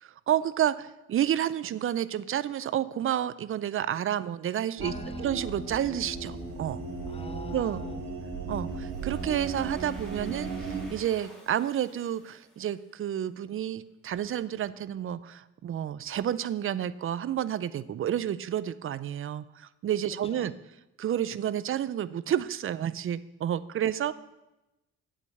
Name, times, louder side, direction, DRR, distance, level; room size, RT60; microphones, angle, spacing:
voice 1, 0.0-4.9 5.2-6.8 7.5-7.8 8.5-20.5 21.0-24.1, right 10 dB, 45° right, 16 dB, 0.5 m, -30 dB
voice 2, 4.8-5.4 7.1-8.1 20.2-20.5 24.1-24.2, left 4 dB, 20° left, 10 dB, 0.8 m, -44 dB
sound 1, 4.8-10.9, right 4 dB, 65° right, 2.6 m, -36 dB
Domestic sounds home sounds, 8.7-13.4, right 1 dB, ahead, 2.4 m, -53 dB
8.3 x 5.4 x 6.9 m, 0.97 s
cardioid pair, 90°, 30 cm